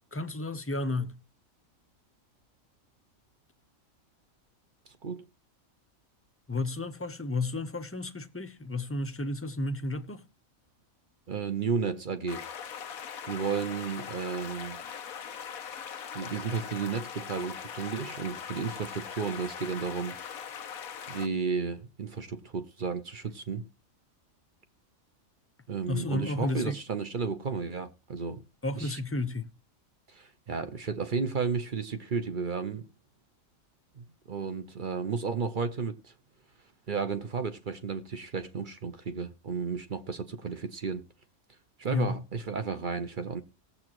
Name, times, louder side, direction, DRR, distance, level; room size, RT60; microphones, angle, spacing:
voice 1, 0.1-1.2 6.5-10.2 25.9-26.8 28.6-29.5 41.9-42.2, left 2 dB, 15° left, 0.5 m, -32 dB
voice 2, 4.9-5.2 11.3-12.4 13.3-14.8 16.1-20.2 21.1-23.7 25.7-28.4 28.8-29.0 30.1-32.9 34.0-36.1 36.9-41.0 41.8-43.4, right 5 dB, 45° right, 0.8 m, -33 dB
sound 1, 12.3-21.3, left 7 dB, 90° left, 1.3 m, -41 dB
18.5 x 7.5 x 3.0 m
omnidirectional pair, 1.4 m